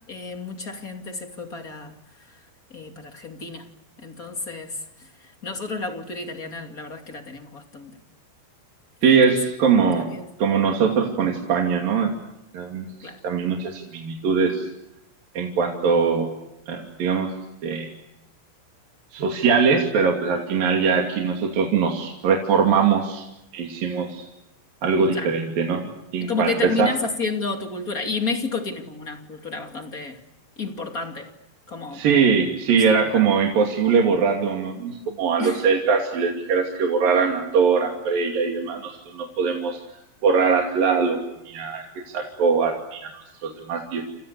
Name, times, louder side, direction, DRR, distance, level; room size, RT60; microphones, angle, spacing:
voice 1, 0.1-1.9 2.7-3.7 4.0-4.8 5.4-8.0 9.0-9.2 9.9-10.2 13.0-13.2 25.1-25.3 26.2-30.2 30.6-31.3 31.7-32.0 32.8-33.2 35.4-35.6, left 4 dB, 35° left, 5 dB, 1.4 m, -31 dB
voice 2, 9.0-10.1 10.4-12.1 12.5-14.7 15.4-16.3 16.7-17.3 17.6-17.9 19.1-23.2 23.5-24.3 24.8-25.9 26.1-26.5 26.8-26.9 31.9-39.8 40.2-41.2 41.5-41.9 42.1-44.0, right 5 dB, 50° right, 1 dB, 4.0 m, -21 dB
30.0 x 29.0 x 6.9 m, 0.87 s
omnidirectional pair, 5.9 m